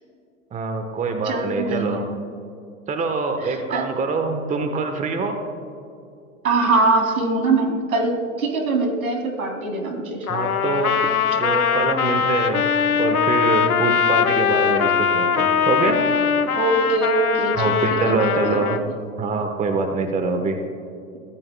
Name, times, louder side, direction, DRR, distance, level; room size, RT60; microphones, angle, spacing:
voice 1, 0.5-2.0 2.9-5.4 10.3-16.0 17.6-18.8 19.2-20.6, right 3 dB, 15° right, 6 dB, 1.1 m, -24 dB
voice 2, 1.2-2.0 3.4-3.8 6.4-10.3 16.5-19.0, right 3 dB, 75° right, 3 dB, 3.0 m, -23 dB
Trumpet, 10.3-18.8, left 7 dB, 85° left, 0.8 m, -21 dB
23.0 x 14.5 x 2.3 m, 2.6 s
figure-of-eight pair, 95°, 42 cm